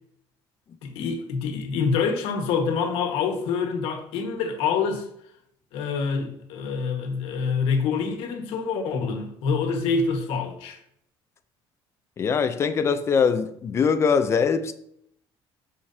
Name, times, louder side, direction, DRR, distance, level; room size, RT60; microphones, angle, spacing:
voice 1, 0.8-5.1 5.7-10.8, left 5 dB, 75° left, 1.5 m, -26 dB
voice 2, 12.2-14.7, left 6 dB, 25° left, 0.5 m, -22 dB
13.0 x 5.0 x 2.8 m
cardioid pair, 170°, 10 cm